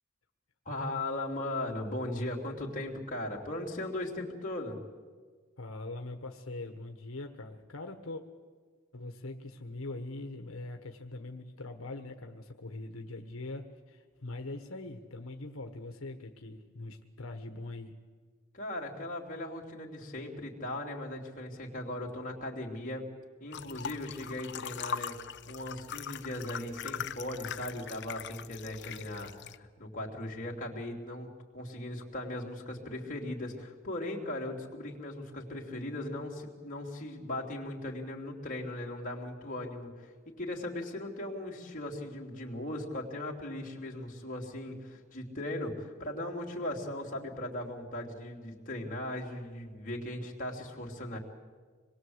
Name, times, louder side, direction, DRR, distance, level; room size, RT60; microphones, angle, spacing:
voice 1, 0.6-4.8 18.5-23.0 23.4-25.1 25.5-29.3 29.6-51.2, left 1 dB, 40° left, -1 dB, 3.3 m, -38 dB
voice 2, 5.6-8.2 8.9-18.0, left 2 dB, 85° left, 5 dB, 1.4 m, -42 dB
sound 1, 23.5-29.6, left 7 dB, 60° left, 0.8 m, -41 dB
26.0 x 21.0 x 8.1 m, 1.5 s
head